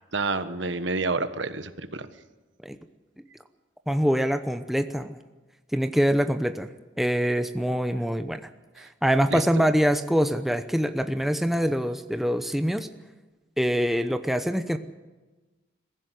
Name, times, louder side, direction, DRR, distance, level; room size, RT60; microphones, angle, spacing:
voice 1, 0.1-2.1 8.8-8.9 9.3-9.5, right 3 dB, 70° right, 11 dB, 1.2 m, -29 dB
voice 2, 3.9-5.2 5.7-6.7 7.0-8.4 8.8-12.9 13.6-14.8, equal, ahead, 8 dB, 0.8 m, -24 dB
22.0 x 15.5 x 9.3 m, 1.2 s
head